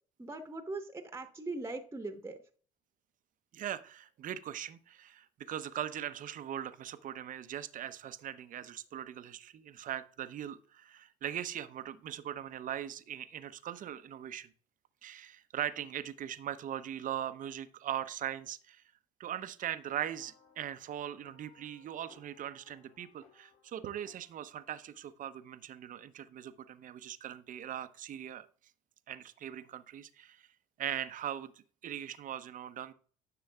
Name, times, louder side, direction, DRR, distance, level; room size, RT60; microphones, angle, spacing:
voice 1, 0.2-2.4, right 2 dB, 15° right, 7 dB, 1.1 m, -40 dB
voice 2, 3.5-14.5 15.0-18.8 19.2-28.5 29.1-30.4 30.8-31.5 31.8-32.9, right 10 dB, 50° right, 13 dB, 0.7 m, -40 dB
sound 1, 19.8-24.9, left 4 dB, 50° left, 3.9 m, -64 dB
10.5 x 6.8 x 2.3 m, 0.43 s
hypercardioid pair, 60°, 18 cm